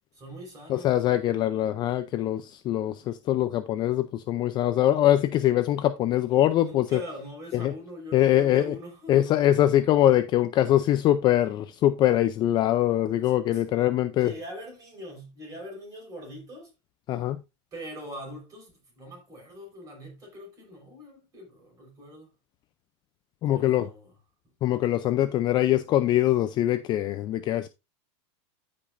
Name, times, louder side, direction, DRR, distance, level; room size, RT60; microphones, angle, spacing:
voice 1, 0.1-0.9 6.5-9.3 13.5-13.9 14.2-16.7 17.7-22.3 23.5-24.1, equal, 20° right, 4.9 m, -42 dB
voice 2, 0.7-7.0 7.5-7.7 8.1-8.8 9.1-14.3 17.1-17.4 23.4-23.9 24.6-27.7, left 13 dB, 30° left, 0.4 m, -23 dB
13.5 x 5.1 x 2.5 m
supercardioid pair, 150°, 15 cm